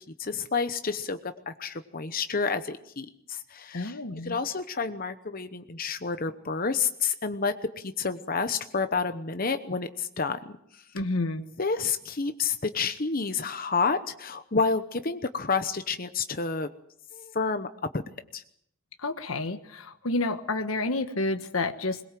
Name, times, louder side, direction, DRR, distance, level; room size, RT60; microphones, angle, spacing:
voice 1, 0.2-4.0 4.2-10.8 11.6-16.7 17.1-18.0 18.3-18.4, left 4 dB, 45° left, 9 dB, 0.9 m, -29 dB
voice 2, 3.7-4.4 10.9-11.4 19.0-22.0, left 2 dB, 85° left, 7 dB, 1.4 m, -29 dB
21.5 x 21.5 x 7.6 m, 0.73 s
head